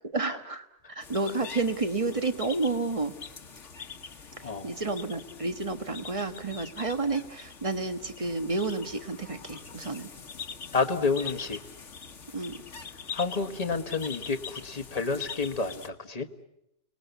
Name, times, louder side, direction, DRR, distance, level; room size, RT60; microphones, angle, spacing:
voice 1, 0.1-3.1 4.4-10.1 12.3-12.6, right 3 dB, 25° right, 8 dB, 1.3 m, -30 dB
sound 1, 1.0-15.9, left 6 dB, 65° left, 1.7 m, -43 dB
voice 2, 10.7-11.6 13.1-16.3, left 4 dB, 30° left, 7 dB, 1.4 m, -29 dB
29.5 x 20.0 x 8.1 m, 0.85 s
omnidirectional pair, 1.4 m